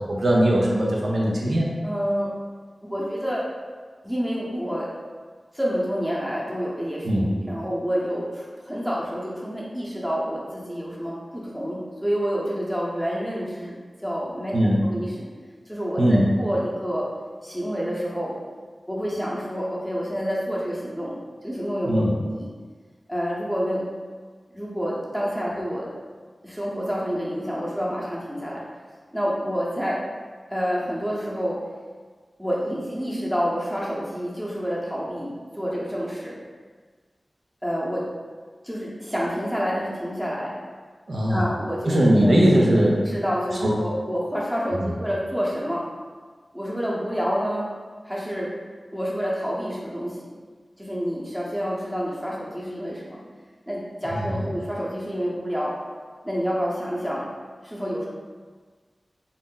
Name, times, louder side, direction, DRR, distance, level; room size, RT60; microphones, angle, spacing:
voice 1, 0.0-1.7 7.0-7.3 14.5-14.8 16.0-16.2 21.8-22.1 41.1-41.4 41.8-43.0 43.6-43.7 44.8-44.9 54.1-54.4, equal, 70° right, -4 dB, 0.6 m, -20 dB
voice 2, 1.8-2.3 2.8-3.4 4.0-4.9 5.5-13.8 14.0-15.3 15.7-17.1 17.4-18.3 18.9-21.2 21.4-22.5 23.1-23.8 24.5-25.9 26.4-28.6 29.1-30.0 30.5-31.6 32.4-36.4 37.6-38.0 38.6-40.5 41.3-42.3 43.1-45.8 46.5-47.7 48.0-48.5 48.9-50.2 50.8-53.2 53.7-55.7 56.2-57.3 57.6-58.1, equal, 5° right, -5 dB, 0.8 m, -28 dB
2.5 x 2.0 x 3.7 m, 1.5 s
cardioid pair, 40°, 0 cm